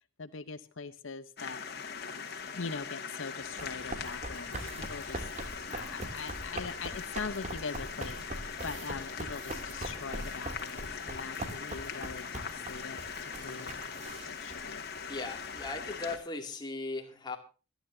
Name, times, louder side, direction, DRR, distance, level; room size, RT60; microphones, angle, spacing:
voice 1, 0.2-1.6 2.5-5.3 5.7-13.8 14.3-14.8, left 4 dB, 75° left, 11 dB, 0.9 m, -42 dB
sound 1, 1.4-16.2, left 6 dB, 50° left, 2.2 m, -41 dB
Run, 3.4-15.7, right 1 dB, 35° right, 2.8 m, -42 dB
sound 2, 4.3-14.3, right 4 dB, 65° right, 4.3 m, -55 dB
voice 2, 15.1-17.4, left 3 dB, 20° left, 3 dB, 2.5 m, -38 dB
26.0 x 11.0 x 2.7 m, 0.34 s
head